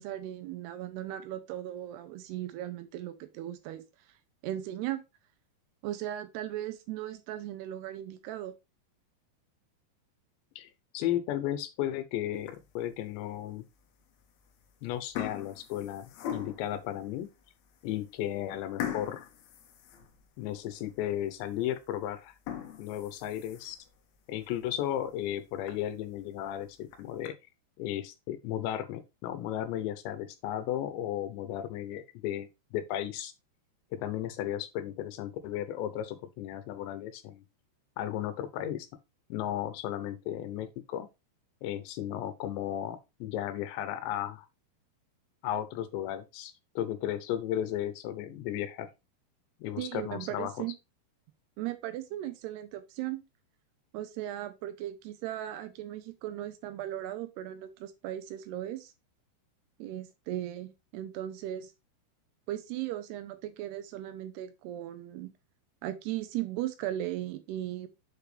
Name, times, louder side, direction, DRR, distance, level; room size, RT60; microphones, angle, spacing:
voice 1, 0.0-3.8 4.4-5.0 5.8-8.5 49.8-50.7 51.6-53.2 53.9-58.9 59.8-61.7 62.5-65.3 65.8-67.9, right 13 dB, 80° right, 2.7 m, -37 dB
voice 2, 10.6-13.6 14.8-17.3 17.8-19.3 20.4-22.3 22.8-23.8 24.3-27.4 27.8-33.3 33.9-37.4 38.0-38.9 39.3-41.1 41.6-44.5 45.4-48.9 49.6-50.5, left 11 dB, 90° left, 3.1 m, -34 dB
sound 1, 12.4-12.9 13.5-13.6 14.4-14.7 14.9-16.8 17.4-17.5 17.9-18.0 18.8-20.6 21.0-21.1 21.6-21.7 22.3-23.9 24.4-24.5 24.9-25.0 25.3-25.4 25.7-25.8 26.7-27.3, left 10 dB, 70° left, 2.8 m, -40 dB
7.4 x 5.0 x 3.3 m
omnidirectional pair, 5.0 m